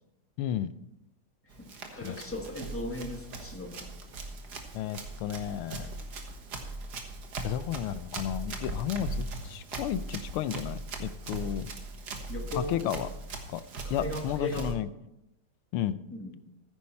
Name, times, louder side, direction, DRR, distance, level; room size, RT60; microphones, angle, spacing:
voice 1, 0.4-0.8 2.0-2.2 4.7-6.0 7.4-11.7 12.6-13.1 13.5-13.6 13.9-14.9 15.7-16.0, left 11 dB, 85° left, 14 dB, 1.6 m, -33 dB
Run, 1.5-14.7, right 3 dB, 55° right, 1.8 m, -39 dB
voice 2, 1.6-3.9 12.3-13.1 13.8-14.8 16.1-16.3, left 2 dB, 10° left, 3 dB, 1.0 m, -37 dB
14.5 x 9.7 x 4.4 m, 0.85 s
omnidirectional pair, 2.3 m